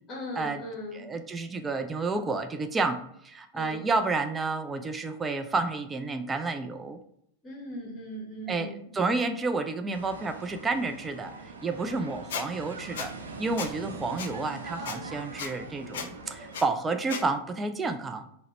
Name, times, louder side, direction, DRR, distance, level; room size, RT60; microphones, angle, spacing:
voice 1, 0.1-1.0 3.5-3.9 7.4-9.0, equal, 25° left, -1 dB, 1.0 m, -39 dB
voice 2, 0.9-7.0 8.5-18.3, right 3 dB, 15° right, 7 dB, 0.4 m, -30 dB
sound 1, 9.9-16.7, right 3 dB, 70° right, 0.5 m, -42 dB
Squeak, 12.3-12.4 13.0-13.1 13.6-13.7 14.2-14.3 14.8-15.0 15.4-15.5 15.9-16.1 16.5-16.6 17.1-17.2, left 7 dB, 55° left, 0.4 m, -34 dB
4.6 x 2.1 x 3.0 m, 0.71 s
figure-of-eight pair, 90°, 0 cm